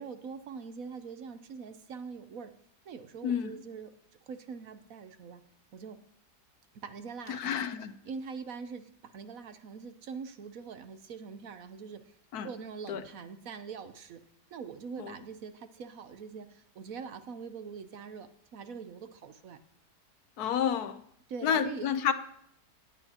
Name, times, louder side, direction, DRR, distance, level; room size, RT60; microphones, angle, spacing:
voice 1, 0.0-2.5 2.9-3.9 4.3-5.4 5.7-6.0 6.7-7.7 8.0-12.1 12.4-14.2 14.5-19.6 21.3-21.9, right 5 dB, 65° right, 1.1 m, -43 dB
voice 2, 7.3-7.9 12.3-12.5 12.9-13.0 15.0-15.1 20.4-21.0 21.4-22.1, left 8 dB, 70° left, 1.2 m, -30 dB
17.5 x 11.0 x 2.9 m
omnidirectional pair, 1.8 m